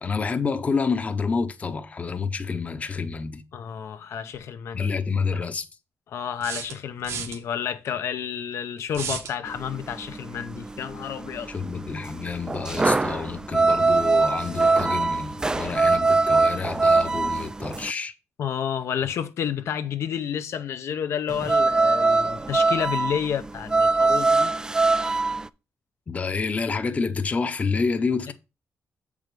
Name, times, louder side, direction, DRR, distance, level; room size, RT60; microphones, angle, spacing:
voice 1, 0.0-3.4 4.7-5.6 11.5-18.1 26.1-28.3, left 5 dB, 30° left, 0.7 m, -28 dB
voice 2, 3.5-4.9 6.1-11.5 18.4-24.5 28.3-28.4, left 8 dB, 70° left, 0.7 m, -30 dB
sound 1, 4.3-4.4 6.4-7.4 8.9-9.4, right 6 dB, 90° right, 1.6 m, -33 dB
sound 2, 9.5-17.9 21.3-25.5, right 3 dB, 15° right, 0.3 m, -22 dB
7.6 x 4.8 x 5.2 m
wide cardioid pair, 140°, 5 cm